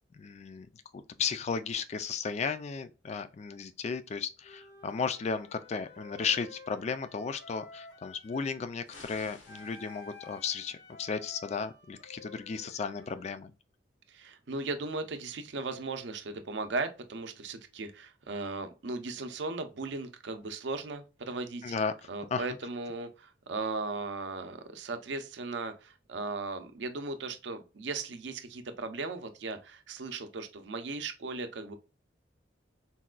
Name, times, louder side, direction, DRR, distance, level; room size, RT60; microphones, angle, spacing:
voice 1, 0.1-0.7 0.9-13.5 21.6-22.4, left 5 dB, 35° left, 0.3 m, -34 dB
Wind instrument woodwind instrument, 4.4-8.7 9.5-13.4, left 3 dB, 60° left, 0.7 m, -52 dB
sound 1, 8.9-10.5, left 3 dB, 85° left, 1.0 m, -53 dB
voice 2, 14.1-21.7 22.1-31.7, right 3 dB, 65° right, 0.5 m, -37 dB
4.0 x 2.2 x 2.4 m
head